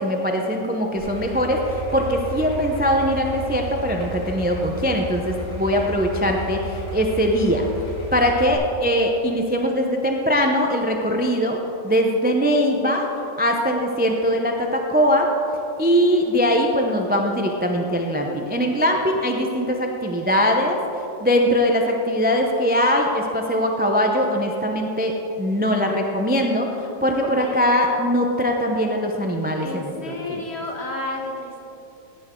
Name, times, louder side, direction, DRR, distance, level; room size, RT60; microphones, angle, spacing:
voice 1, 0.0-7.7 8.1-11.6 11.8-13.1 13.4-15.3 15.8-20.8 21.2-30.4, equal, 15° right, 1 dB, 0.4 m, -21 dB
Idling, 1.0-8.5, equal, 75° left, 4.2 m, -33 dB
voice 2, 27.2-27.6 29.6-31.7, left 2 dB, 40° left, 0 dB, 1.7 m, -31 dB
17.0 x 10.0 x 3.8 m, 2.9 s
omnidirectional pair, 1.8 m